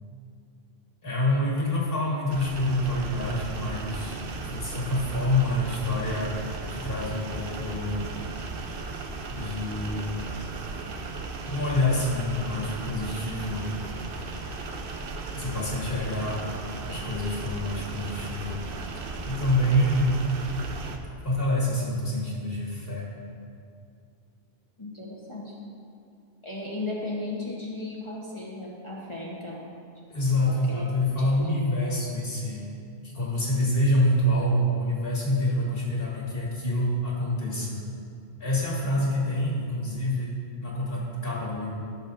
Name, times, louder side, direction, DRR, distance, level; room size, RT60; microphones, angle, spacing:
voice 1, 1.0-6.4 6.7-8.1 9.3-10.1 11.4-13.7 15.3-16.4 16.9-18.7 19.2-20.3 21.2-23.1 30.1-32.7 33.0-37.8 38.4-40.3 40.6-41.7, left 1 dB, 60° left, -5 dB, 2.2 m, -27 dB
sound 1, 2.3-21.0, right 3 dB, 60° right, 0.9 m, -36 dB
voice 2, 24.8-25.6 26.4-29.6 30.5-30.8 31.2-31.9, left 2 dB, 30° left, -5 dB, 1.1 m, -36 dB
16.5 x 7.2 x 2.6 m, 2.4 s
omnidirectional pair, 1.1 m